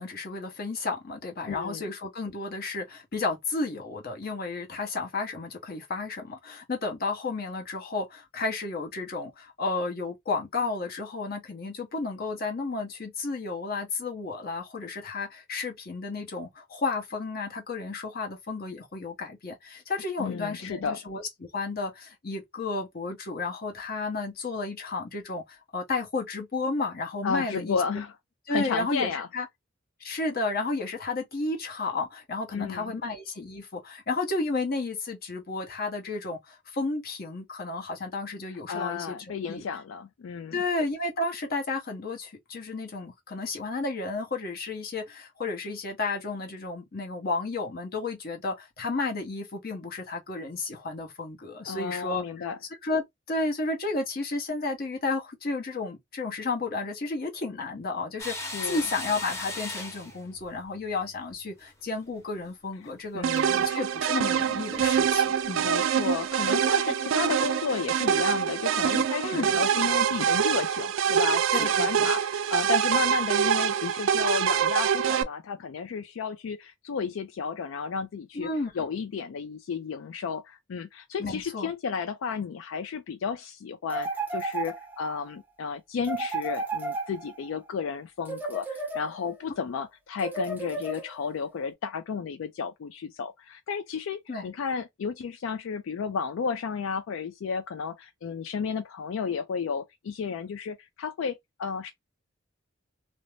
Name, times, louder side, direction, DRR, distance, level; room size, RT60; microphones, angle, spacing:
voice 1, 0.0-27.8 28.5-29.5 30.0-39.6 40.5-52.5 52.8-63.2 63.6-65.7 69.2-69.6 71.5-72.1 78.3-78.7 81.2-81.7 94.3-94.5, left 3 dB, 50° left, 0.9 m, -32 dB
voice 2, 1.5-1.9 20.2-21.0 27.2-28.1 28.5-29.3 32.5-33.0 38.7-40.6 51.6-52.6 58.4-58.8 63.1-63.6 65.6-101.9, left 6 dB, 85° left, 0.4 m, -33 dB
sound 1, 58.2-61.7 62.0-62.2 63.3-63.5 64.5-64.6 64.8-65.1 65.4-65.5 66.0-66.1, left 2 dB, 15° left, 0.9 m, -38 dB
sound 2, 63.2-75.2, right 8 dB, 75° right, 0.3 m, -25 dB
sound 3, 83.9-85.2 86.0-87.6 88.3-89.4 90.2-91.4, right 3 dB, 10° right, 0.5 m, -33 dB
2.5 x 2.0 x 3.1 m
head